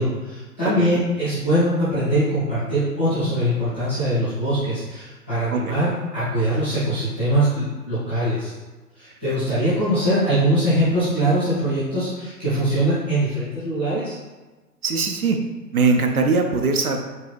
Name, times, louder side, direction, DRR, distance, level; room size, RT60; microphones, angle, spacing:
voice 1, 0.0-8.5 9.0-14.1, right 1 dB, 10° left, -16 dB, 0.5 m, -22 dB
voice 2, 5.5-5.8 9.3-9.4 14.8-15.4 15.7-17.0, right 4 dB, 60° right, 4 dB, 0.7 m, -21 dB
4.5 x 2.7 x 3.4 m, 1.2 s
figure-of-eight pair, 130°, 49 cm